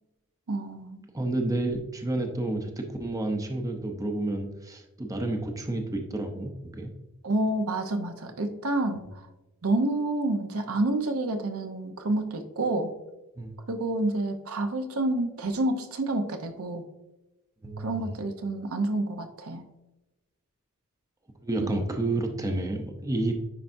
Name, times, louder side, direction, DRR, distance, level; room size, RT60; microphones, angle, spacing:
voice 1, 0.5-1.0 7.2-9.2 9.6-12.9 13.7-16.8 17.8-19.6 21.6-21.9, right 2 dB, 75° right, 6 dB, 0.8 m, -28 dB
voice 2, 1.1-6.9 13.4-13.5 17.6-18.1 21.4-23.3, right 2 dB, 15° right, 4 dB, 0.6 m, -30 dB
9.9 x 4.7 x 2.6 m, 1.0 s
head